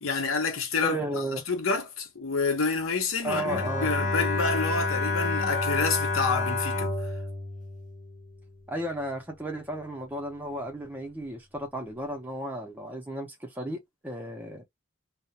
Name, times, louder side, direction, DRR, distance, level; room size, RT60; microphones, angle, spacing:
voice 1, 0.0-1.0 1.3-6.9, left 4 dB, 75° left, 0.7 m, -28 dB
voice 2, 0.8-1.4 3.2-3.9 8.7-14.6, right 1 dB, 10° right, 0.5 m, -34 dB
Bowed string instrument, 3.3-8.6, left 3 dB, 35° left, 0.7 m, -29 dB
2.3 x 2.0 x 2.8 m
head